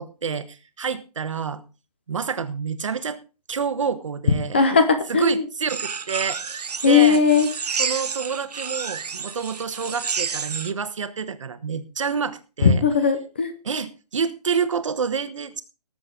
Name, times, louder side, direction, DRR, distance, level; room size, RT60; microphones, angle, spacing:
voice 1, 0.0-1.6 2.1-3.2 3.5-4.6 5.1-7.2 7.8-12.8 13.6-15.6, right 6 dB, 50° right, 12 dB, 1.3 m, -28 dB
voice 2, 4.5-5.4 6.8-7.5 12.6-13.5, left 5 dB, 15° left, 9 dB, 0.6 m, -18 dB
sound 1, 5.7-10.7, right 6 dB, 70° right, 1.2 m, -30 dB
19.0 x 7.7 x 3.8 m, 0.32 s
hypercardioid pair, 180°, 21 cm